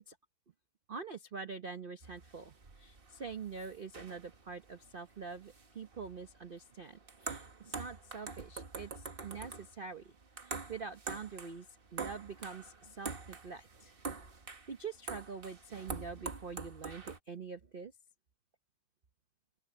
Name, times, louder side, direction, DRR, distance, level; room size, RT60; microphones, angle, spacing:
voice 1, 0.9-10.1 10.4-13.9 14.7-17.9, right 5 dB, 75° right, 0.5 m, -45 dB
sound 1, 2.0-17.2, right 4 dB, 30° right, 1.4 m, -46 dB
open air
omnidirectional pair, 2.2 m